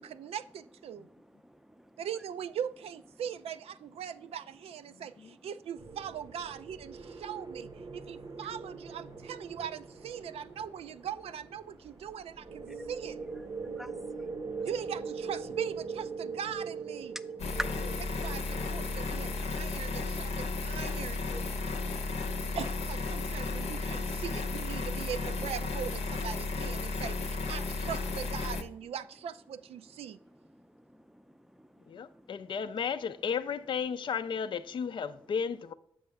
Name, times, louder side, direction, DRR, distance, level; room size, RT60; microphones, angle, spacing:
voice 1, 0.0-1.1 2.0-13.2 14.6-17.2 18.2-21.2 22.6-30.2, right 8 dB, 65° right, 0.4 m, -40 dB
voice 2, 1.2-1.9 4.9-5.0 7.9-8.0 12.7-12.9 13.6-14.5 17.1-18.0 21.3-22.5 30.5-32.3, equal, 5° right, 0.5 m, -45 dB
sound 1, 5.8-19.6, right 4 dB, 40° right, 0.7 m, -42 dB
sound 2, 17.4-28.6, left 3 dB, 70° left, 0.8 m, -34 dB
voice 3, 31.9-35.7, left 6 dB, 45° left, 0.4 m, -33 dB
7.6 x 5.4 x 3.4 m
hypercardioid pair, 40°, 11 cm